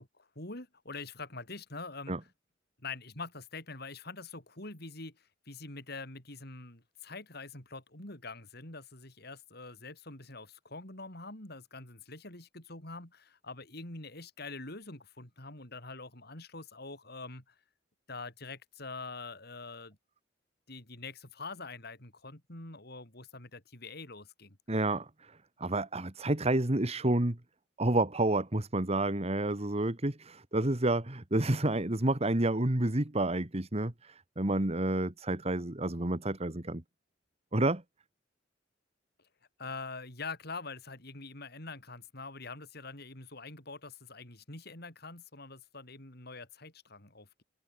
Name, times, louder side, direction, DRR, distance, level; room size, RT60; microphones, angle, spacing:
voice 1, 0.0-2.2 2.8-17.5 18.1-20.0 20.7-24.6 39.6-47.4, left 3 dB, 60° left, 6.8 m, -45 dB
voice 2, 24.7-25.3 25.6-27.4 27.8-36.8 37.5-37.8, right 2 dB, 35° right, 1.7 m, -29 dB
open air
head